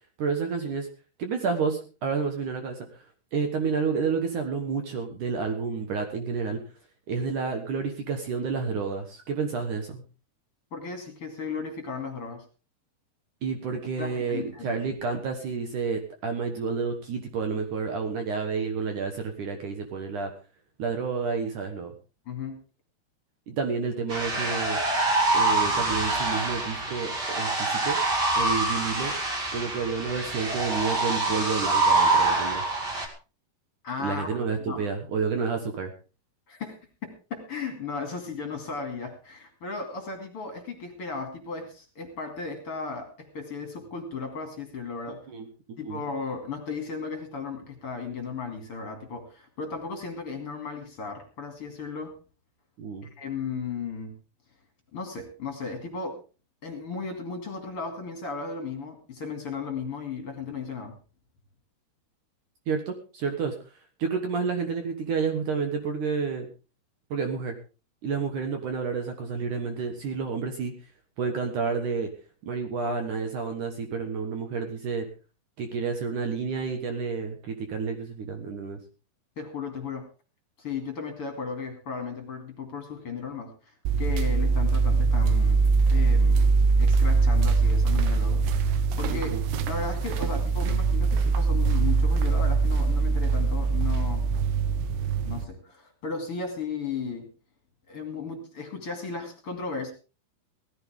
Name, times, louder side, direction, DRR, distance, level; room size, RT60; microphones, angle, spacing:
voice 1, 0.2-0.9 1.2-3.0 3.3-6.6 7.1-10.0 13.4-20.3 20.8-21.9 23.5-24.8 25.3-28.0 28.4-29.1 29.5-32.6 34.0-35.9 45.1-46.0 52.8-53.1 62.7-63.5 64.0-66.5 67.1-67.6 68.0-70.7 71.2-72.1 72.4-75.1 75.6-78.8 89.1-89.5, right 5 dB, 60° right, 5 dB, 2.5 m, -30 dB
voice 2, 10.7-12.4 14.0-14.8 22.3-22.6 33.8-34.4 34.7-34.8 36.5-36.8 37.0-45.2 45.8-52.1 53.2-54.1 54.9-56.2 56.6-60.9 79.4-80.1 80.6-85.6 85.9-86.5 86.8-89.3 89.7-94.2 95.2-97.3 97.9-99.9, left 4 dB, 40° left, 4 dB, 2.9 m, -35 dB
sound 1, 24.1-33.1, right 2 dB, 30° right, 2.6 m, -25 dB
sound 2, 83.9-95.4, right 4 dB, 80° right, 3.1 m, -22 dB
17.5 x 14.5 x 3.6 m, 0.33 s
omnidirectional pair, 4.8 m